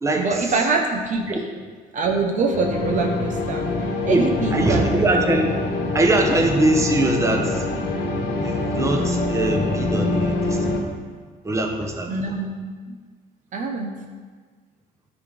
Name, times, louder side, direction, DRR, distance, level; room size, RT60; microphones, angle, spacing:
voice 1, 0.2-1.3 1.9-3.7 4.0-4.8 12.1-13.0 13.5-14.0, right 3 dB, 50° right, 2 dB, 1.0 m, -24 dB
sound 1, 2.5-10.8, left 2 dB, 80° left, 1.5 m, -25 dB
voice 2, 4.1-5.5 5.9-7.7 8.4-10.8 11.4-12.1, right 2 dB, 15° right, 2 dB, 1.2 m, -22 dB
12.0 x 4.1 x 5.0 m, 1.5 s
cardioid pair, 110°, 17 cm